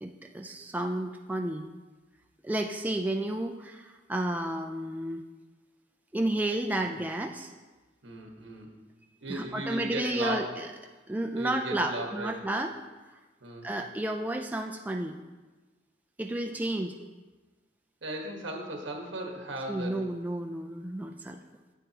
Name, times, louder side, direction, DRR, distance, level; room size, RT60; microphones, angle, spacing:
voice 1, 0.0-1.7 2.4-5.2 6.1-7.5 9.3-10.7 11.1-12.7 13.6-15.2 16.2-17.0 19.7-21.4, right 1 dB, 10° right, 3 dB, 0.3 m, -31 dB
voice 2, 8.0-8.7 9.2-10.6 11.3-12.4 13.4-13.7 18.0-20.1, right 1 dB, 75° right, 1 dB, 1.4 m, -36 dB
9.0 x 8.3 x 2.9 m, 1.3 s
head